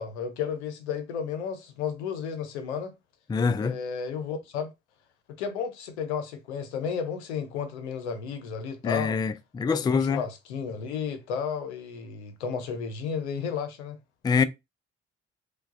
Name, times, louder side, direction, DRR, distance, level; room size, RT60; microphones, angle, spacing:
voice 1, 0.0-2.9 3.6-4.7 5.4-9.2 9.7-14.0, left 6 dB, 90° left, 0.6 m, -33 dB
voice 2, 3.3-3.8 8.8-10.2 14.2-14.4, left 5 dB, 15° left, 0.3 m, -25 dB
4.5 x 2.2 x 2.4 m
hypercardioid pair, 45°, 33 cm